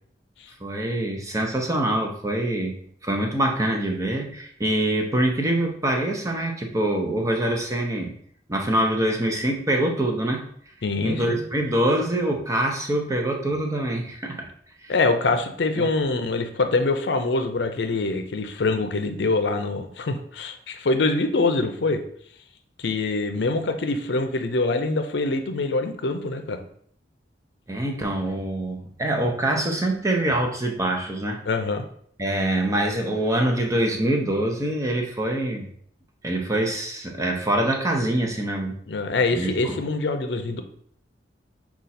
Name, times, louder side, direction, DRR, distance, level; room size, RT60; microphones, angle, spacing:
voice 1, 0.6-2.8 3.0-8.1 8.5-10.5 11.0-14.5 14.8-14.9 15.8-15.9 27.7-31.4 32.2-35.7 36.2-38.8 39.3-39.8, right 1 dB, 20° right, 1 dB, 0.6 m, -24 dB
voice 2, 10.8-11.4 14.9-22.0 22.8-26.6 31.4-31.8 38.9-40.6, left 3 dB, 70° left, 7 dB, 0.6 m, -24 dB
5.1 x 2.4 x 4.2 m, 0.62 s
head